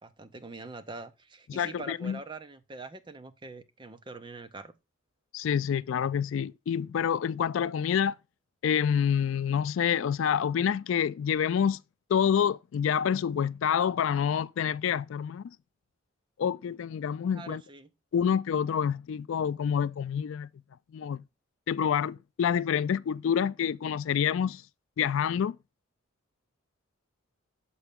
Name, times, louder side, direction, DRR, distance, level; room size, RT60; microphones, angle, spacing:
voice 1, 0.0-4.7 17.3-17.9, right 3 dB, 20° right, 0.6 m, -44 dB
voice 2, 1.5-2.2 5.3-8.2 8.6-11.8 12.1-15.4 16.4-17.6 18.1-20.5 20.9-21.2 21.7-24.6 25.0-25.6, left 8 dB, 70° left, 0.3 m, -27 dB
6.9 x 5.0 x 3.5 m
head